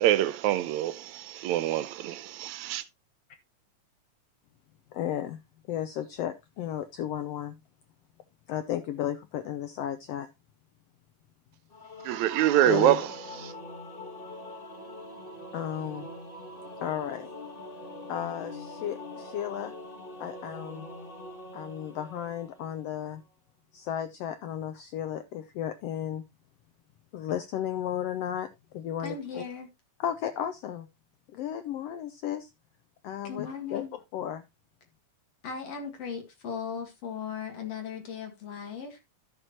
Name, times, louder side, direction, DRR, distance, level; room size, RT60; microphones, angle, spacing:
voice 1, 0.0-2.1 2.7-2.8 12.1-13.1 13.4-13.5, right 13 dB, 80° right, 1.9 m, -24 dB
voice 2, 4.9-5.4 5.7-7.5 8.5-10.3 12.6-13.0 15.5-16.1 16.8-17.3 18.1-19.7 20.2-20.9 21.5-23.2 23.7-26.2 27.1-28.5 28.7-29.4 30.0-30.9 31.3-32.5 33.0-33.8 34.1-34.4, left 10 dB, 75° left, 1.5 m, -34 dB
Singing / Musical instrument, 11.7-23.0, left 1 dB, 40° left, 0.7 m, -43 dB
voice 3, 29.0-29.7 33.2-33.9 35.4-39.0, left 6 dB, 60° left, 3.0 m, -37 dB
12.0 x 6.9 x 2.9 m
omnidirectional pair, 3.3 m